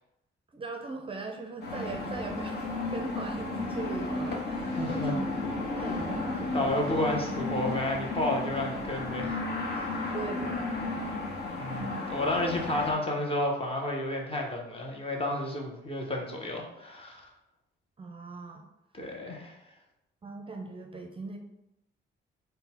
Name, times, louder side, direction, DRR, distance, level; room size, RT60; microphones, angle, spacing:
voice 1, 0.5-5.3 5.7-6.5 10.1-10.9 12.3-12.6 18.0-18.7 20.2-21.4, right 3 dB, 25° right, 3 dB, 0.5 m, -39 dB
sound 1, 1.6-12.9, left 2 dB, 55° left, 1.0 m, -33 dB
voice 2, 4.8-5.1 6.5-9.4 11.6-17.3 18.9-19.6, left 1 dB, 30° left, 0 dB, 0.9 m, -31 dB
3.8 x 2.2 x 4.2 m, 0.88 s
cardioid pair, 90°, 20 cm